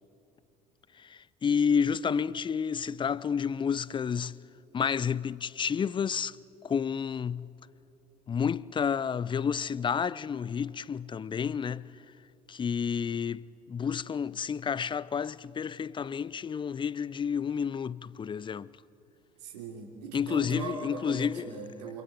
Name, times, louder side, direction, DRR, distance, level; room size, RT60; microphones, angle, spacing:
voice 1, 0.9-4.4 4.7-6.4 6.6-7.5 8.3-12.0 12.5-18.7 20.1-21.6, left 7 dB, 25° left, 0.5 m, -30 dB
voice 2, 19.4-22.0, right 5 dB, 75° right, 3.1 m, -39 dB
28.0 x 26.0 x 4.5 m
figure-of-eight pair, 55°, 21 cm